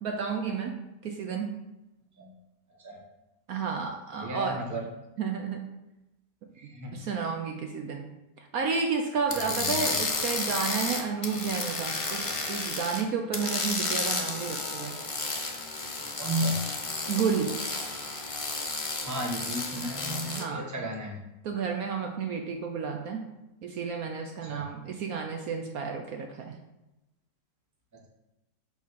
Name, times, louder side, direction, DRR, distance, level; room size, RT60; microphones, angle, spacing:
voice 1, 0.0-1.6 3.5-4.6 5.2-5.7 6.9-8.1 8.5-15.0 17.1-17.6 20.3-20.6 21.4-23.3 23.6-26.5, right 5 dB, 65° right, 3 dB, 1.0 m, -31 dB
voice 2, 4.2-4.8 6.6-7.0 9.5-10.0 16.2-16.7 18.9-21.2 24.4-24.6 27.9-28.1, equal, 15° right, 0 dB, 0.9 m, -34 dB
sound 1, 9.3-13.0 13.3-20.4, left 3 dB, 35° left, 0.5 m, -32 dB
5.3 x 4.5 x 6.2 m, 0.98 s
omnidirectional pair, 1.8 m